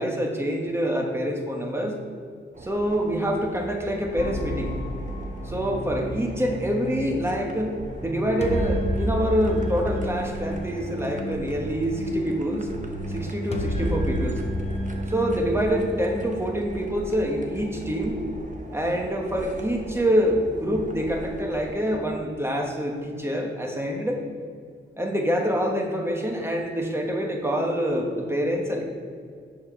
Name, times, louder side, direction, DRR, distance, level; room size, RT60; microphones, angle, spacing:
voice 1, 0.0-2.0 2.6-4.8 5.4-7.7 8.0-12.7 13.1-14.4 15.1-18.2 18.7-24.2 25.0-28.9, equal, 10° right, 1 dB, 1.4 m, -26 dB
sound 1, 2.5-21.9, right 2 dB, 35° right, 1.2 m, -40 dB
sound 2, 4.2-16.2, equal, 30° left, 1.0 m, -31 dB
10.5 x 4.7 x 5.8 m, 2.2 s
wide cardioid pair, 95°, 21 cm